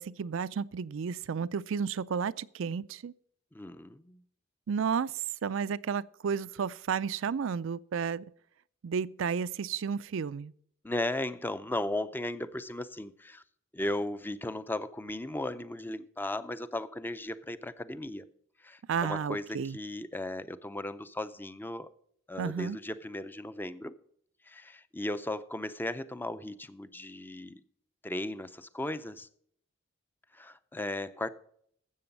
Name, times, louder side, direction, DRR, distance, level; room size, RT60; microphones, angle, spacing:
voice 1, 0.0-3.1 4.7-5.1 5.4-8.3 8.8-10.5 18.9-19.8 22.4-22.8, right 6 dB, 65° right, 0.4 m, -32 dB
voice 2, 3.5-4.2 10.8-13.4 13.7-18.3 18.6-21.9 22.3-23.9 24.5-27.6 28.0-29.3 30.3-31.3, left 1 dB, 10° left, 0.5 m, -36 dB
13.0 x 7.8 x 5.3 m
head